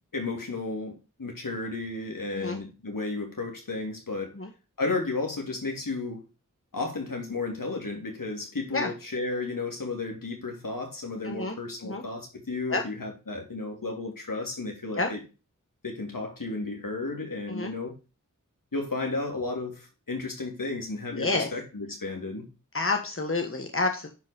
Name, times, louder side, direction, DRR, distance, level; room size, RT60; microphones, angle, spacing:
voice 1, 0.1-4.3 4.8-6.2 6.7-15.2 15.8-18.0 18.7-22.5, left 3 dB, 85° left, 3.2 m, -33 dB
voice 2, 11.2-11.6 11.8-12.0 12.7-12.8 14.9-15.1 17.5-17.7 21.1-21.5 22.7-24.1, left 3 dB, 40° left, 1.6 m, -28 dB
10.5 x 5.4 x 5.3 m
wide cardioid pair, 55°, 32 cm